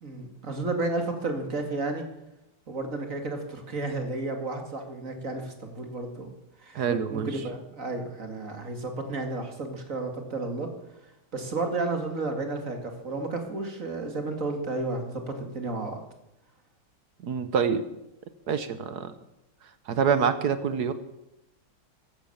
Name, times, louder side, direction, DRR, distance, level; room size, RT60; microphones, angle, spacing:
voice 1, 0.0-2.0 2.7-6.3 6.6-10.7 11.3-16.0, right 2 dB, 40° right, 5 dB, 2.5 m, -32 dB
voice 2, 6.7-7.3 17.2-17.9 18.5-19.1 19.9-20.9, right 6 dB, 55° right, 12 dB, 1.4 m, -26 dB
15.0 x 12.0 x 7.2 m, 0.90 s
omnidirectional pair, 2.3 m